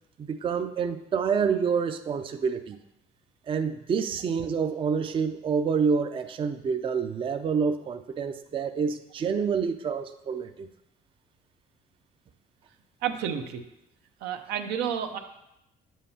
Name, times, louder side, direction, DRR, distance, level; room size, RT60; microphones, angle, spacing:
voice 1, 0.3-2.8 3.5-10.7, right 6 dB, 30° right, 8 dB, 0.4 m, -27 dB
voice 2, 13.0-13.6 14.2-15.2, right 8 dB, 85° right, 6 dB, 0.8 m, -30 dB
9.0 x 7.3 x 2.8 m, 0.86 s
cardioid pair, 110°, 17 cm